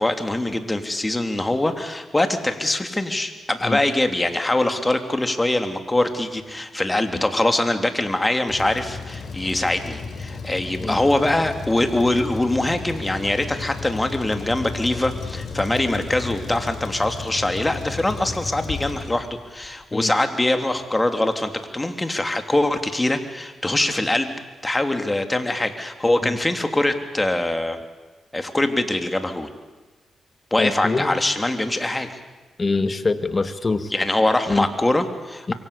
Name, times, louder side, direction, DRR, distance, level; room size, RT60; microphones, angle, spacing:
voice 1, 0.0-24.3 24.6-27.8 28.3-29.5 30.5-32.2 33.9-35.5, left 1 dB, 15° left, 7 dB, 3.1 m, -23 dB
Truck, 8.5-19.7, left 4 dB, 60° left, 4.6 m, -34 dB
voice 2, 30.6-31.1 32.6-33.9 34.5-34.7 35.5-35.6, left 3 dB, 35° left, 10 dB, 2.0 m, -24 dB
26.5 x 23.5 x 8.4 m, 1.3 s
cardioid pair, 70°, 0 cm